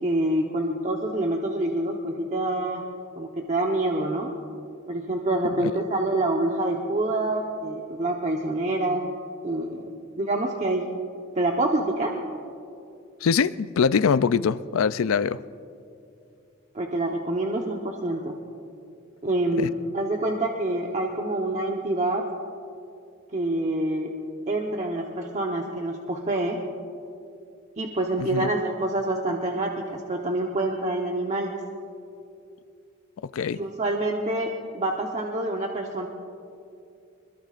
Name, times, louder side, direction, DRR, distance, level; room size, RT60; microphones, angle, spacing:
voice 1, 0.0-2.8 3.2-4.3 4.9-9.0 9.4-9.9 10.2-10.9 11.4-12.2 16.7-18.4 19.2-22.3 23.3-24.1 24.5-26.6 27.8-31.5 33.5-36.1, right 1 dB, 35° right, 0 dB, 1.0 m, -26 dB
voice 2, 13.2-15.4 19.6-19.7 28.2-28.5 33.3-33.6, left 6 dB, 80° left, 15 dB, 0.4 m, -23 dB
25.0 x 21.5 x 2.5 m, 2.6 s
head